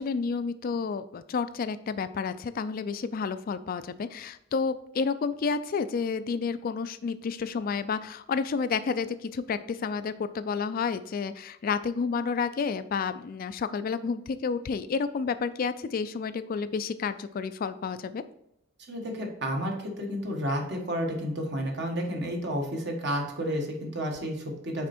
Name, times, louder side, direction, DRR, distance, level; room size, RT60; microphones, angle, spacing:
voice 1, 0.0-18.2, left 5 dB, 45° left, 12 dB, 0.3 m, -30 dB
voice 2, 18.9-24.9, equal, 60° right, 2 dB, 1.3 m, -31 dB
6.0 x 4.3 x 4.3 m, 0.82 s
head